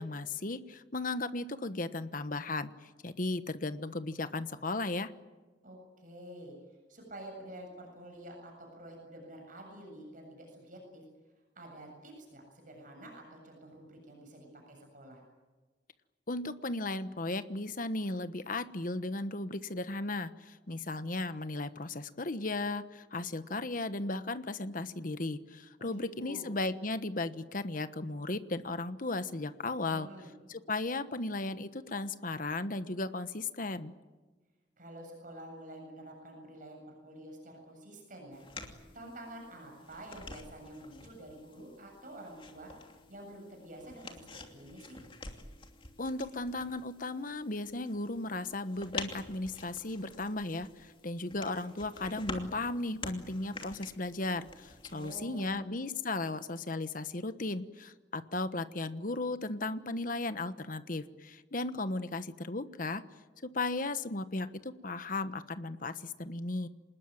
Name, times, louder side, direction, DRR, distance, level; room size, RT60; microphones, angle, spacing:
voice 1, 0.0-5.1 16.3-30.1 30.5-33.9 46.0-63.0 63.4-66.7, left 2 dB, 50° left, 11 dB, 1.2 m, -36 dB
voice 2, 5.6-6.5 6.9-11.0 11.6-15.2 25.8-26.5 29.9-30.3 34.8-38.4 38.9-42.7 43.1-45.0 54.9-55.6, right 1 dB, 45° right, 2 dB, 7.5 m, -49 dB
sound 1, 38.3-55.6, left 3 dB, 30° left, 2.8 m, -48 dB
27.0 x 20.0 x 9.1 m, 1.2 s
head